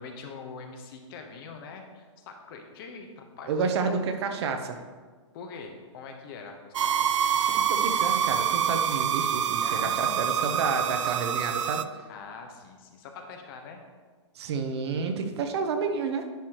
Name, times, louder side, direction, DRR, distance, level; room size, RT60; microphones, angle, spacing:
voice 1, 0.0-4.1 5.3-7.1 9.6-10.9 12.1-13.8, left 4 dB, 45° left, 4 dB, 1.1 m, -43 dB
voice 2, 3.5-4.8 7.7-11.8 14.3-16.3, right 5 dB, 60° right, 6 dB, 0.8 m, -30 dB
sound 1, 6.7-11.8, right 9 dB, 75° right, 0.4 m, -26 dB
10.0 x 4.8 x 3.0 m, 1.5 s
hypercardioid pair, 130°, 16 cm